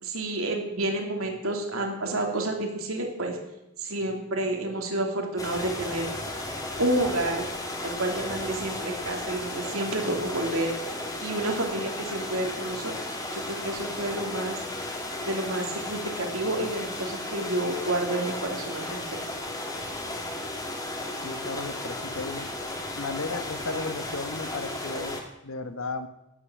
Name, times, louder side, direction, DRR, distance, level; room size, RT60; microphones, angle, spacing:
voice 1, 0.0-3.4 3.8-6.1 6.8-7.4 7.8-10.7 11.2-12.9 13.3-14.6 15.2-19.0, right 1 dB, 85° right, 2 dB, 3.0 m, -29 dB
sound 1, 5.4-25.2, left 1 dB, 20° left, 2.0 m, -34 dB
voice 2, 21.2-22.5 23.0-26.1, left 3 dB, 80° left, 9 dB, 1.3 m, -34 dB
15.0 x 10.0 x 6.3 m, 0.91 s
head